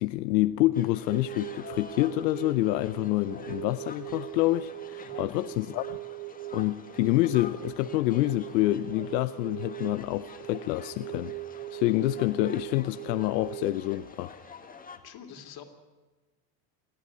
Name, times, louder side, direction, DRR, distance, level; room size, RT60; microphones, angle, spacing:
voice 1, 0.0-6.0 6.5-14.4, left 17 dB, 90° left, 0.7 m, -27 dB
sound 1, 0.7-15.0, left 4 dB, 15° left, 2.1 m, -48 dB
sound 2, 1.1-13.8, right 20 dB, 65° right, 0.9 m, -41 dB
voice 2, 5.0-5.3 15.0-15.6, left 8 dB, 50° left, 3.3 m, -46 dB
29.0 x 11.5 x 9.7 m
supercardioid pair, 110°, 48 cm